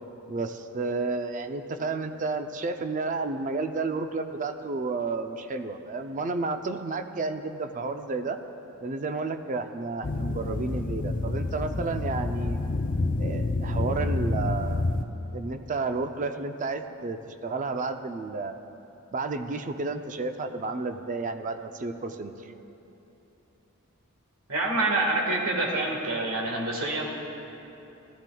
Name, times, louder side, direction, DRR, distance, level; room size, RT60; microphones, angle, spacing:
voice 1, 0.3-8.4 8.8-12.6 13.2-18.5 19.1-22.3, right 3 dB, 35° right, 8 dB, 0.5 m, -31 dB
sound 1, 10.0-15.0, left 2 dB, 40° left, 0.5 m, -28 dB
voice 2, 24.5-27.1, right 2 dB, 80° right, -1 dB, 1.6 m, -26 dB
16.5 x 13.0 x 2.3 m, 3.0 s
head